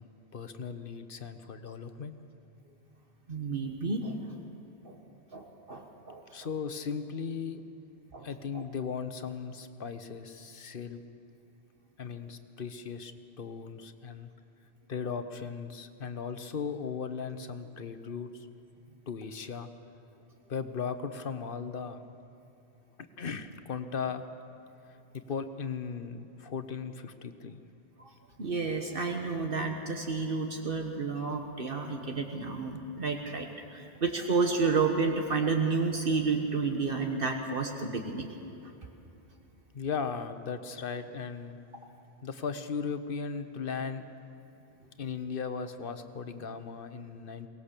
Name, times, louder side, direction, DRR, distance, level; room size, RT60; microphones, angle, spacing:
voice 1, 0.0-2.1 6.3-7.6 8.2-11.0 12.0-13.1 13.4-14.3 14.9-18.3 19.1-19.7 20.5-22.0 23.2-24.2 25.3-27.6 39.7-41.6 42.2-44.0 45.0-47.5, left 6 dB, 60° left, 10 dB, 1.1 m, -37 dB
voice 2, 3.3-4.1 4.8-4.9 5.3-6.2 8.1-8.3 8.5-8.6 28.0-28.1 28.4-33.5 33.7-38.3, right 4 dB, 60° right, 3 dB, 1.5 m, -30 dB
23.0 x 18.5 x 6.8 m, 2.9 s
omnidirectional pair, 1.0 m